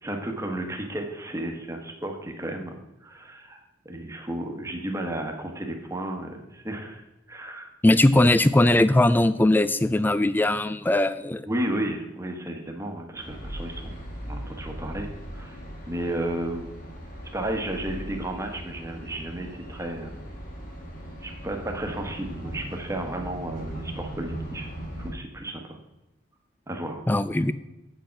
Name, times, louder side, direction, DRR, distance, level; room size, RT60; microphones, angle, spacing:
voice 1, 0.0-2.7 3.0-7.7 8.1-8.3 11.4-15.1 15.3-15.6 15.9-16.7 17.3-20.2 21.2-24.7 25.0-25.8 26.7-27.0, right 1 dB, 15° right, 3 dB, 1.2 m, -33 dB
voice 2, 7.8-11.4 27.1-27.5, left 1 dB, 10° left, 14 dB, 0.3 m, -20 dB
sound 1, 13.1-25.1, right 1 dB, 45° left, 2.4 m, -38 dB
8.1 x 6.5 x 5.8 m, 0.96 s
head